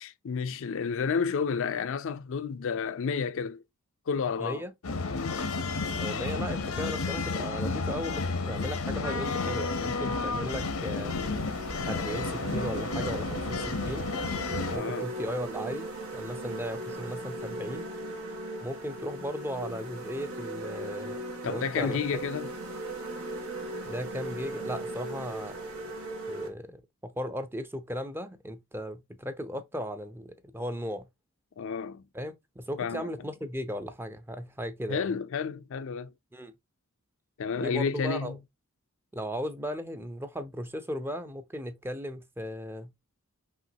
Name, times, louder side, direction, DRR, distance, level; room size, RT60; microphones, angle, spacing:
voice 1, 0.0-3.6 4.1-4.6 5.1-5.4 14.7-15.1 21.4-22.5 31.6-32.0 32.8-33.1 34.9-36.1 37.4-38.4, left 6 dB, 65° left, 0.4 m, -31 dB
voice 2, 4.4-4.7 5.9-11.2 11.9-14.1 14.7-17.9 18.6-22.0 23.9-25.6 26.3-31.0 32.1-35.1 36.3-36.5 37.6-38.4 39.1-42.9, equal, 10° right, 0.5 m, -36 dB
sound 1, 4.8-14.8, left 3 dB, 90° left, 0.9 m, -31 dB
sound 2, 10.3-26.5, right 2 dB, 90° right, 1.5 m, -38 dB
5.6 x 2.9 x 2.7 m
head